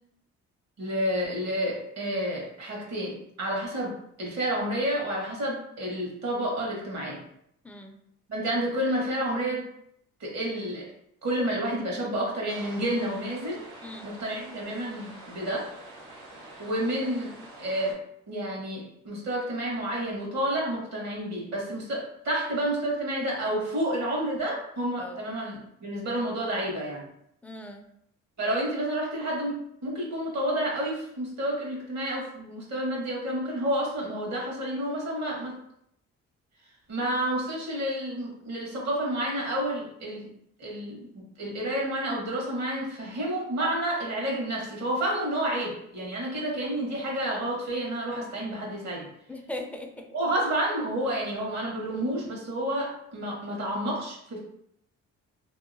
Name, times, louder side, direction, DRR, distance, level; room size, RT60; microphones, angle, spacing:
voice 1, 0.8-3.9 4.2-7.2 8.3-9.6 10.2-10.9 11.2-13.6 14.0-15.7 16.6-17.3 17.6-18.0 18.3-27.0 28.4-35.6 36.9-40.3 40.6-49.1 50.1-54.4, right 1 dB, 65° right, -3 dB, 1.3 m, -30 dB
voice 2, 7.6-7.9 13.8-14.1 25.0-25.2 27.4-27.9 49.3-50.1, left 1 dB, 5° left, 3 dB, 0.4 m, -39 dB
sound 1, 12.5-17.9, right 2 dB, 85° right, 0.9 m, -46 dB
2.8 x 2.5 x 2.6 m, 0.73 s
cardioid pair, 90°, 30 cm